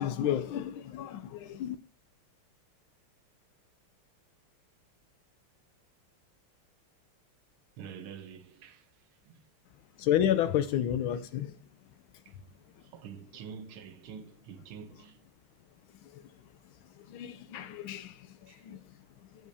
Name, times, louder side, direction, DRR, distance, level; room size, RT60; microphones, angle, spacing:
voice 1, 0.0-1.8 10.0-11.6 16.0-16.3 17.0-18.8, left 10 dB, 80° left, 1.4 m, -31 dB
voice 2, 7.8-9.4 12.2-15.2 18.5-18.7, right 7 dB, 80° right, 1.7 m, -47 dB
13.5 x 5.1 x 2.7 m
omnidirectional pair, 2.3 m